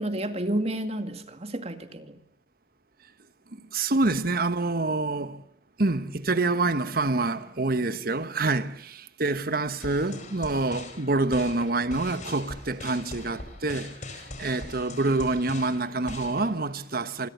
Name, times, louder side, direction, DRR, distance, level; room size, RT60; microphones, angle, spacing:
voice 1, 0.0-2.2, right 1 dB, 35° right, 2.2 m, -30 dB
voice 2, 3.5-5.4 5.8-17.3, right 2 dB, 55° right, 1.3 m, -27 dB
sound 1, 9.8-16.5, left 2 dB, 45° left, 4.3 m, -41 dB
27.0 x 21.5 x 8.2 m
head